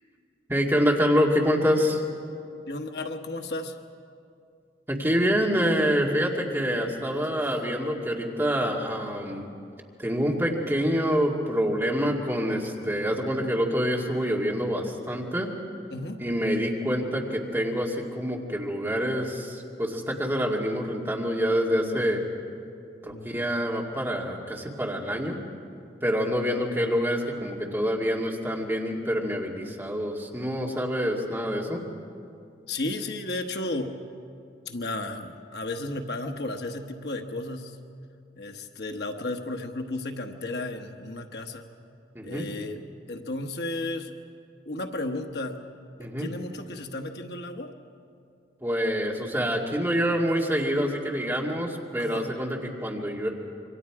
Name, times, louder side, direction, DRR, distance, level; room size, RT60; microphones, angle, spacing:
voice 1, 0.5-2.0 4.9-9.5 10.0-15.5 16.2-22.2 23.0-25.4 26.0-31.8 42.1-42.5 46.0-46.3 48.6-53.3, equal, 15° right, -2 dB, 2.2 m, -26 dB
voice 2, 2.7-3.7 7.0-7.2 15.9-16.2 23.1-23.3 32.7-34.0 34.7-37.8 38.4-41.6 42.2-42.8 43.1-44.1 44.7-45.6 46.2-47.7 52.0-52.3, left 2 dB, 70° left, 4 dB, 1.2 m, -33 dB
26.5 x 23.5 x 4.8 m, 2.4 s
head